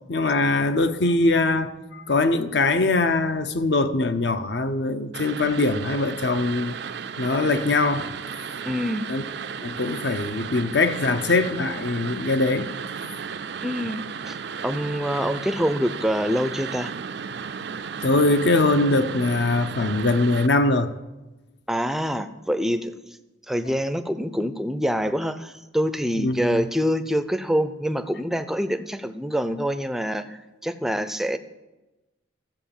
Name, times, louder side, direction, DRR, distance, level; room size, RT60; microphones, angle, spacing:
voice 1, 0.1-6.8 7.2-8.1 9.1-9.2 9.6-12.7 18.0-20.9 26.2-26.6, left 2 dB, 60° left, 0.8 m, -22 dB
sound 1, 5.1-20.5, right 6 dB, 60° right, 0.5 m, -34 dB
voice 2, 8.6-9.1 13.6-16.9 21.7-22.9 23.5-31.4, equal, ahead, 0.5 m, -26 dB
13.5 x 7.8 x 7.1 m
head